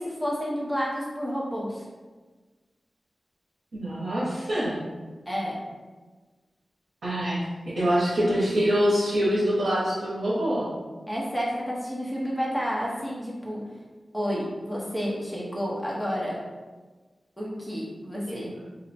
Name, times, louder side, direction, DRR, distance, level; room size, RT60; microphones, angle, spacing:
voice 1, 0.0-1.8 5.3-5.6 11.1-13.6 14.1-16.4 17.4-18.5, equal, 5° left, -5 dB, 0.9 m, -30 dB
voice 2, 3.7-4.7 7.0-7.4 7.8-10.7 18.3-18.5, equal, 90° right, -9 dB, 0.8 m, -25 dB
2.7 x 2.1 x 4.1 m, 1.3 s
wide cardioid pair, 80°, 0 cm